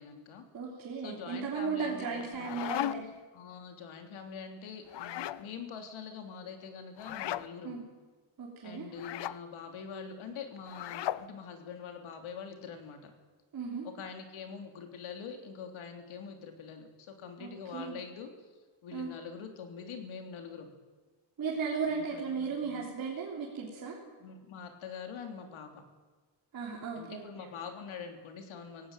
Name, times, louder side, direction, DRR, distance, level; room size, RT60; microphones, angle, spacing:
voice 1, 0.0-0.4 1.0-2.8 3.3-7.7 8.6-13.1 13.8-18.3 18.8-20.7 21.9-23.0 24.2-25.8 26.9-28.9, left 6 dB, 85° left, 5 dB, 3.3 m, -44 dB
voice 2, 0.5-3.1 7.6-7.8 8.4-8.9 13.5-13.9 17.4-18.0 18.9-19.1 21.4-24.0 26.5-27.5, right 5 dB, 45° right, -3 dB, 3.5 m, -36 dB
sound 1, 2.2-3.2 4.9-5.4 7.0-7.5 9.0-9.4 10.7-11.3, left 12 dB, 60° left, 0.7 m, -36 dB
17.5 x 17.0 x 9.0 m, 1.4 s
cardioid pair, 150°, 47 cm